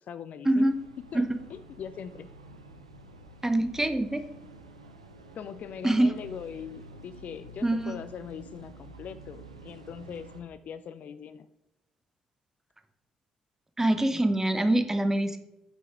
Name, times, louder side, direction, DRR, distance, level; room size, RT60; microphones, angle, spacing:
voice 1, 0.1-0.7 1.1-2.3 5.3-11.5, left 8 dB, 50° left, 13 dB, 0.4 m, -41 dB
sound 1, 0.6-10.4, right 2 dB, 85° right, 0.5 m, -49 dB
voice 2, 3.4-4.2 5.8-6.1 7.6-8.0 13.8-15.4, right 1 dB, 15° right, 9 dB, 0.8 m, -24 dB
6.3 x 5.6 x 4.4 m, 0.88 s
figure-of-eight pair, 40°, 3 cm